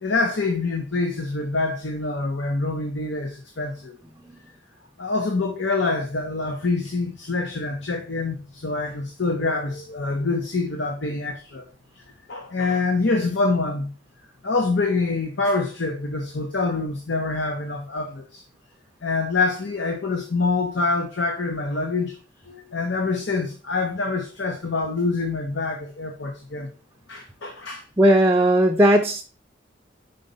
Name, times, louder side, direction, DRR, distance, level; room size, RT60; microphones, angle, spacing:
voice 1, 0.0-4.0 5.0-11.7 12.3-13.9 14.4-18.4 19.0-22.1 22.5-26.7 27.1-27.8, left 3 dB, 70° left, 0.9 m, -25 dB
voice 2, 28.0-29.2, right 1 dB, 15° right, 0.5 m, -16 dB
5.4 x 4.0 x 5.3 m
head